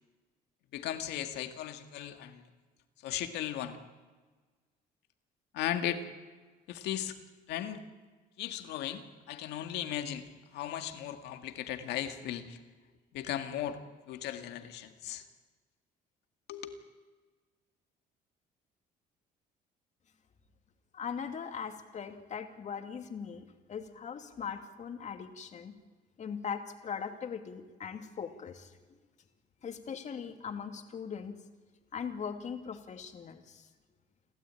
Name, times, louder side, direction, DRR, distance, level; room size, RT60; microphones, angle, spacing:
voice 1, 0.7-2.4 3.0-3.8 5.5-6.0 6.7-7.2 7.5-7.8 8.4-12.6 13.1-13.8 14.1-15.2 16.5-16.8, left 11 dB, 85° left, 8 dB, 2.0 m, -37 dB
voice 2, 20.9-25.7 26.2-29.0 29.6-31.4 31.9-33.7, left 7 dB, 45° left, 7 dB, 2.5 m, -40 dB
29.5 x 13.0 x 9.0 m, 1.4 s
cardioid pair, 110°, 17 cm